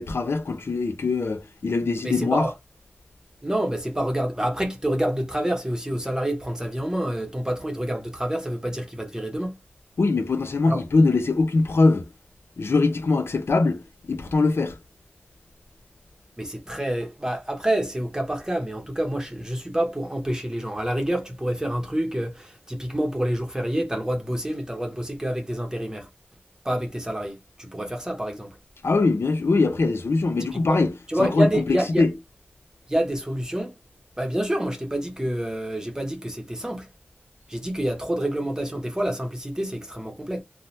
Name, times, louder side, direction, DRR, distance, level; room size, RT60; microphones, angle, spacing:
voice 1, 0.0-2.5 10.0-12.1 12.6-13.8 14.1-14.8 28.8-30.9 31.3-31.5 32.0-32.1, left 3 dB, 85° left, 0.5 m, -22 dB
voice 2, 2.0-2.5 3.4-9.6 10.6-10.8 16.4-26.1 26.6-28.6 30.5-30.8 31.1-32.0 32.9-33.8 34.2-36.9 37.5-40.4, right 1 dB, 15° right, 0.8 m, -27 dB
2.7 x 2.1 x 3.1 m
wide cardioid pair, 55°, 4 cm